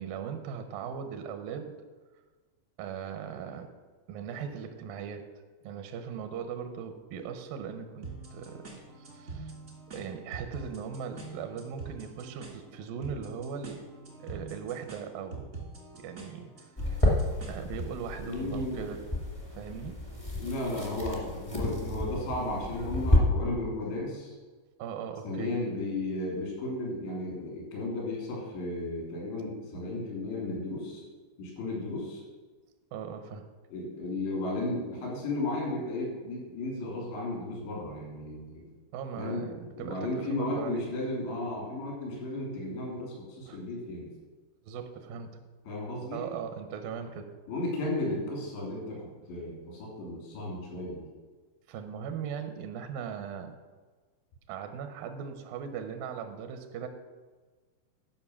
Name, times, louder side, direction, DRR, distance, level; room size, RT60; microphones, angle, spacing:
voice 1, 0.0-1.8 2.8-3.7 4.1-5.3 5.6-9.5 9.9-13.8 14.2-15.5 16.0-17.1 17.5-19.0 19.5-20.1 20.6-20.9 24.8-25.5 32.9-33.5 38.9-40.9 43.5-43.6 44.6-45.5 46.1-47.3 51.7-53.6 54.5-56.9, right 7 dB, 85° right, 7 dB, 2.0 m, -39 dB
sound 1, 8.0-18.0, right 3 dB, 60° right, 0.8 m, -45 dB
sound 2, 16.8-23.2, left 1 dB, 35° left, 0.5 m, -30 dB
voice 2, 18.2-18.8 20.4-24.4 25.2-31.1 31.4-32.2 33.7-38.6 39.2-44.1 45.7-46.2 47.5-51.1, left 2 dB, 80° left, -3 dB, 5.6 m, -34 dB
12.0 x 5.5 x 7.1 m, 1.4 s
omnidirectional pair, 5.1 m